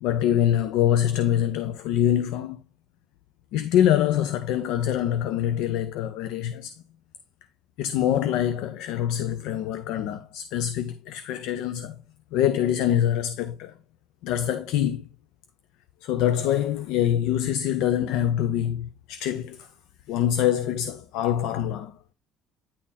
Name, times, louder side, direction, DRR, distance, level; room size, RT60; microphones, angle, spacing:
voice 1, 0.0-2.6 3.5-6.7 7.8-12.0 12.3-13.7 14.2-15.1 16.0-19.7 20.1-21.9, left 11 dB, 85° left, 0.5 m, -24 dB
9.8 x 3.7 x 4.1 m
cardioid pair, 110°, 0 cm